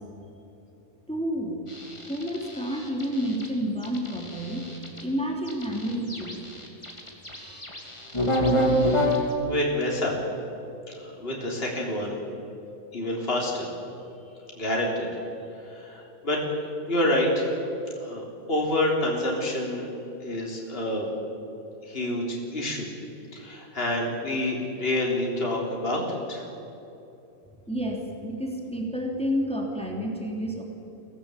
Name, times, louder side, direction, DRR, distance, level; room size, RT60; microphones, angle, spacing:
voice 1, 1.1-1.6 2.1-4.7 5.0-6.4 8.0-8.1 27.7-30.6, equal, 5° left, 0 dB, 3.0 m, -30 dB
sound 1, 1.7-3.5 3.8-5.0 5.5-9.3, equal, 20° left, 3.0 m, -27 dB
voice 2, 9.5-10.1 10.9-12.2 12.9-13.7 14.6-15.1 15.6-16.4 16.9-17.5 18.0-19.9 20.2-21.1 21.8-22.9 23.3-26.4, left 1 dB, 40° left, -2 dB, 3.8 m, -28 dB
24.0 x 17.5 x 8.3 m, 3.0 s
omnidirectional pair, 1.5 m